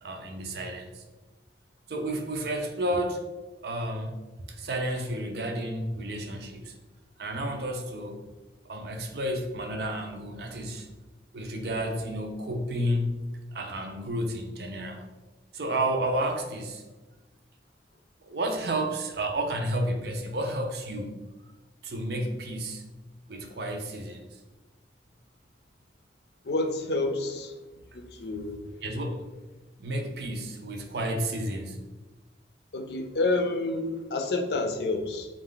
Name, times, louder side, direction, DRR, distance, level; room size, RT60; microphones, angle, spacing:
voice 1, 0.0-1.0 1.9-3.3 3.6-4.2 4.5-6.7 7.2-8.2 8.6-10.9 11.3-15.1 15.5-16.8 18.2-21.2 21.8-22.8 23.3-24.4 28.8-29.3 29.8-31.9, right 1 dB, 65° right, 4 dB, 0.6 m, -31 dB
voice 2, 26.4-27.5 27.9-28.7 32.7-35.3, left 2 dB, 65° left, 5 dB, 0.5 m, -29 dB
4.1 x 2.5 x 3.8 m, 1.2 s
head